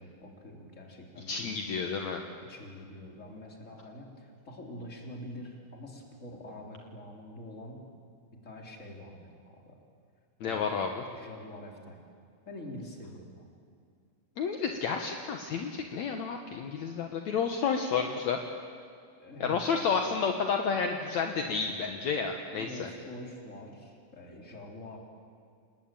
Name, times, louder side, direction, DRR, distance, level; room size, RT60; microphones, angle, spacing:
voice 1, 0.0-1.5 2.5-7.9 8.4-9.8 10.4-10.8 11.1-12.0 12.5-13.5 19.2-19.6 21.2-21.7 22.0-22.1 22.5-25.0, left 1 dB, 20° left, 0 dB, 3.8 m, -45 dB
voice 2, 1.3-2.2 10.4-11.0 14.4-18.4 19.4-22.9, left 5 dB, 65° left, 3 dB, 2.5 m, -31 dB
29.0 x 20.0 x 9.1 m, 2.3 s
omnidirectional pair, 3.8 m